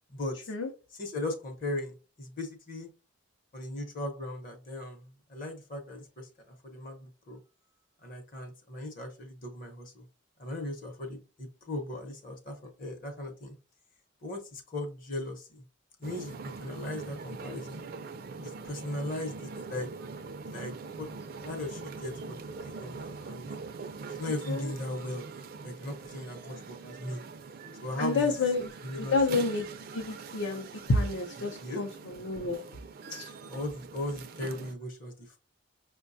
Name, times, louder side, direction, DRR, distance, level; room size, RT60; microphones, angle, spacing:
voice 1, 1.0-2.9 3.5-7.4 8.0-10.1 10.4-13.5 14.2-15.6 16.0-17.8 18.4-19.9 20.5-22.3 22.6-23.5 24.1-25.2 25.6-27.2 27.8-28.3 28.8-29.2 31.6-31.8 33.5-35.4, left 1 dB, 40° left, 5 dB, 0.8 m, -38 dB
sound 1, 16.0-34.8, right 4 dB, 45° right, 0.3 m, -43 dB
voice 2, 24.2-24.7 28.0-29.7 29.9-32.6 33.1-33.3, left 3 dB, 75° left, 0 dB, 0.6 m, -30 dB
5.3 x 2.2 x 2.6 m, 0.33 s
head